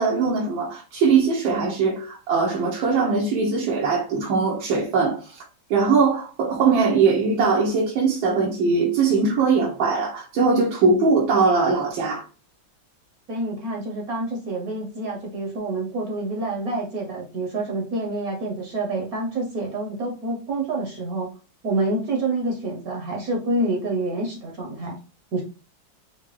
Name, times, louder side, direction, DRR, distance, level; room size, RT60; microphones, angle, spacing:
voice 1, 0.0-5.4 5.7-12.2, right 4 dB, 85° right, 1.5 m, -21 dB
voice 2, 13.3-21.3 21.6-25.0 25.3-25.4, right 2 dB, 60° right, 1.1 m, -27 dB
4.6 x 2.2 x 3.0 m
omnidirectional pair, 2.1 m